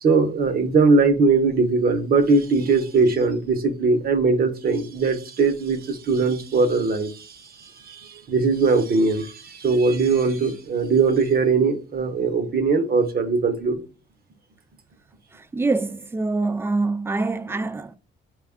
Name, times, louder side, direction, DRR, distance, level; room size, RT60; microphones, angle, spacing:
voice 1, 0.0-13.8, right 4 dB, 50° right, 0.8 m, -20 dB
voice 2, 15.3-17.9, right 3 dB, 10° right, 0.4 m, -25 dB
4.6 x 2.3 x 3.5 m
cardioid pair, 90°, 20 cm